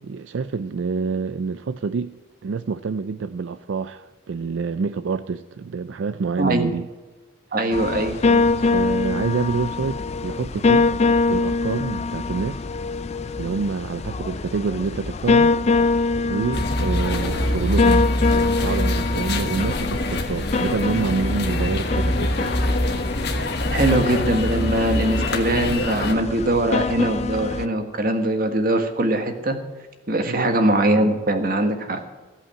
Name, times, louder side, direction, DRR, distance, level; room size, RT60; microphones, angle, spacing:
voice 1, 0.1-2.2 2.4-6.9 8.1-11.0 11.3-12.6 13.3-15.5 16.3-22.8 30.3-30.5, right 4 dB, 70° right, 12 dB, 0.4 m, -27 dB
voice 2, 6.4-6.7 7.5-8.4 23.7-29.6 30.1-32.0, right 1 dB, 45° right, 6 dB, 1.6 m, -22 dB
sound 1, 7.7-27.7, left 3 dB, 35° left, 0.4 m, -24 dB
sound 2, 16.5-26.1, left 1 dB, 55° left, 1.4 m, -24 dB
15.5 x 5.6 x 8.8 m, 1.3 s
head